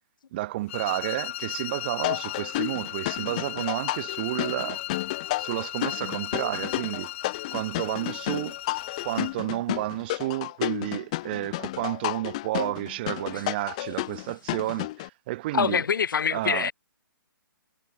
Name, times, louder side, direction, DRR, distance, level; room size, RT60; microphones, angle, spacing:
voice 1, 0.3-4.8 5.4-7.1 7.5-8.6 9.0-15.8 16.3-16.7, right 17 dB, 25° right, 1.1 m, -31 dB
sound 1, 0.7-9.4, left 14 dB, 35° left, 3.1 m, -36 dB
sound 2, 2.0-15.1, left 18 dB, 20° left, 0.3 m, -32 dB
voice 2, 15.5-16.7, left 7 dB, 65° left, 1.2 m, -25 dB
hypercardioid pair, 160°, 12 cm